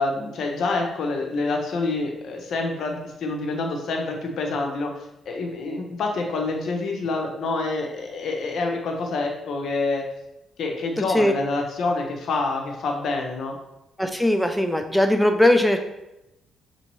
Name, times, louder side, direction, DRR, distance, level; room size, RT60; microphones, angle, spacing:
voice 1, 0.0-10.1 10.6-13.6, left 3 dB, 70° left, 2 dB, 0.8 m, -27 dB
voice 2, 11.0-11.3 14.0-15.8, left 1 dB, 5° left, 5 dB, 0.4 m, -20 dB
6.2 x 2.7 x 3.0 m, 0.90 s
cardioid pair, 90°, 0 cm